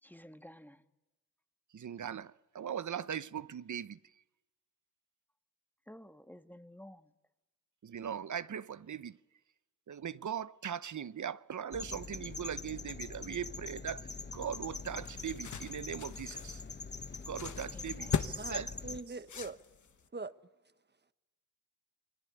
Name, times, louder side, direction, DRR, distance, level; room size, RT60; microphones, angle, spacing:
voice 1, 0.0-0.8 5.9-7.1 17.7-18.3, left 1 dB, 5° left, 1.5 m, -53 dB
voice 2, 1.7-4.0 7.8-9.2 9.9-16.6 17.2-18.7, right 8 dB, 70° right, 0.8 m, -40 dB
sound 1, 11.7-19.0, left 4 dB, 35° left, 1.3 m, -43 dB
sound 2, 14.6-20.1, left 7 dB, 70° left, 1.2 m, -40 dB
voice 3, 18.4-19.6 20.1-20.3, right 3 dB, 35° right, 1.3 m, -42 dB
29.0 x 21.5 x 8.4 m
cardioid pair, 70°, 31 cm